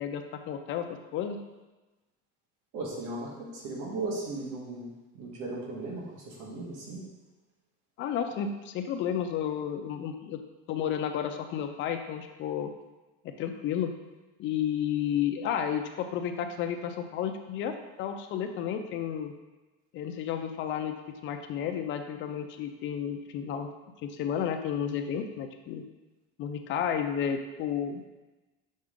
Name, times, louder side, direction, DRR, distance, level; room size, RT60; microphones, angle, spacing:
voice 1, 0.0-1.4 8.0-10.4 10.7-12.7 13.2-13.9 14.4-19.3 19.9-21.0 21.2-23.7 24.0-25.8 26.4-28.0, left 8 dB, 40° left, 6 dB, 0.5 m, -32 dB
voice 2, 2.7-4.9 5.1-7.1, right 2 dB, 60° right, -3 dB, 1.8 m, -37 dB
6.4 x 4.4 x 3.7 m, 1.1 s
cardioid pair, 150°, 30 cm